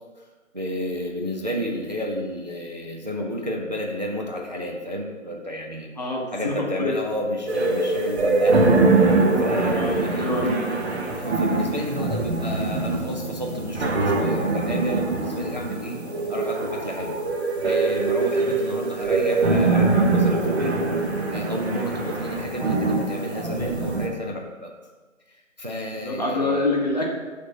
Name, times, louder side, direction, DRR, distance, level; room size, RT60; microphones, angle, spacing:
voice 1, 0.5-5.9 6.3-10.4 11.1-16.0 16.3-17.2 17.6-20.7 21.3-24.7 25.6-26.7, equal, 35° right, 0 dB, 0.4 m, -31 dB
voice 2, 6.0-7.0 9.7-10.6 10.9-11.0 26.0-27.1, left 2 dB, 30° left, -2 dB, 0.7 m, -26 dB
sound 1, 7.5-24.1, right 3 dB, 55° right, 0.9 m, -23 dB
5.8 x 3.4 x 5.3 m, 1.3 s
figure-of-eight pair, 155°, 40 cm